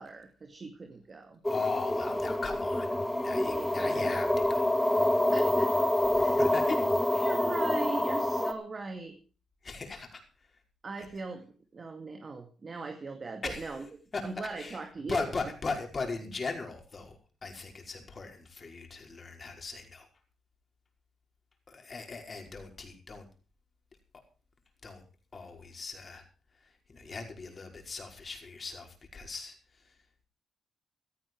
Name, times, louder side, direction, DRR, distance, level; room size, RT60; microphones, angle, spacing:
voice 1, 0.0-1.4 3.5-4.1 5.3-5.7 6.2-6.4 7.2-9.2 10.8-11.5 11.7-13.8 14.2-15.3, right 3 dB, 40° right, 5 dB, 2.3 m, -40 dB
sound 1, 1.4-8.5, left 1 dB, 10° left, 1.9 m, -27 dB
voice 2, 1.5-2.9 3.2-4.8 6.2-6.8 7.1-7.3 9.6-10.5 11.0-11.1 13.4-13.8 14.1-14.8 15.1-20.1 21.7-23.3 24.8-25.0 25.3-26.2 26.5-30.0, left 4 dB, 35° left, 3 dB, 5.2 m, -39 dB
16.5 x 13.5 x 4.7 m, 0.38 s
cardioid pair, 90°, 0 cm